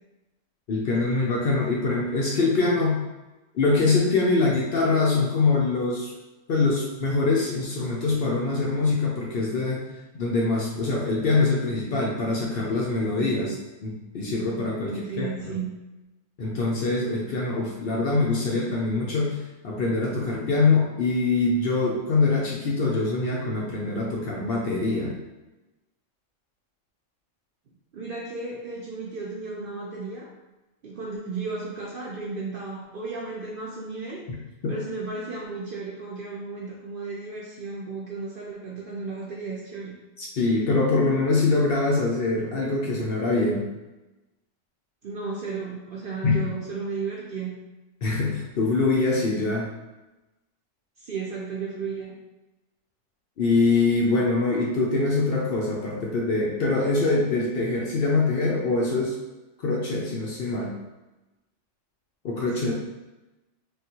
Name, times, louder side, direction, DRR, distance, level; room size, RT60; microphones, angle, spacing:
voice 1, 0.7-3.0 3.5-6.1 6.5-9.8 10.1-13.6 13.8-15.6 16.4-25.1 34.6-34.7 40.2-43.6 46.2-46.5 48.0-49.7 53.4-59.2 59.6-60.7 62.2-62.7, left 3 dB, 60° left, -2 dB, 0.6 m, -24 dB
voice 2, 14.9-15.7 27.9-30.3 30.8-34.2 34.7-39.9 45.0-47.5 51.0-52.1 62.5-62.7, right 4 dB, 60° right, -3 dB, 0.6 m, -34 dB
3.5 x 2.3 x 2.8 m, 1.0 s
omnidirectional pair, 1.3 m